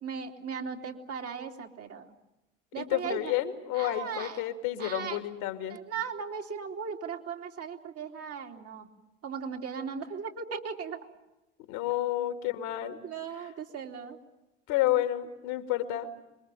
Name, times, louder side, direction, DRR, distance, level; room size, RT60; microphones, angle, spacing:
voice 1, 0.0-2.1 2.7-3.3 3.7-4.4 4.8-5.2 5.7-8.9 9.2-11.0 13.0-14.2, right 6 dB, 40° right, 2 dB, 3.0 m, -37 dB
voice 2, 2.8-5.8 11.7-13.0 13.4-13.5 14.7-16.1, left 13 dB, 60° left, 7 dB, 2.7 m, -30 dB
26.5 x 22.5 x 9.1 m, 0.98 s
figure-of-eight pair, 65°, 35 cm